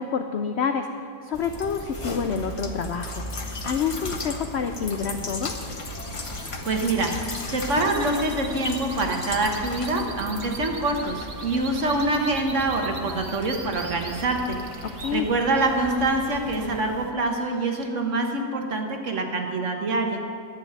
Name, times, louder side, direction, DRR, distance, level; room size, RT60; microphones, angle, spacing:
voice 1, 0.0-5.5 14.8-15.3, left 6 dB, 75° left, 6 dB, 0.6 m, -28 dB
sound 1, 1.3-17.1, left 3 dB, 30° left, 0.6 m, -37 dB
sound 2, 1.9-16.9, right 1 dB, 10° right, 1.8 m, -41 dB
sound 3, 5.4-15.1, right 4 dB, 35° right, 1.0 m, -41 dB
voice 2, 6.3-7.1 7.5-20.2, right 2 dB, 50° right, 3 dB, 1.4 m, -25 dB
10.5 x 7.3 x 9.7 m, 2.3 s
omnidirectional pair, 1.8 m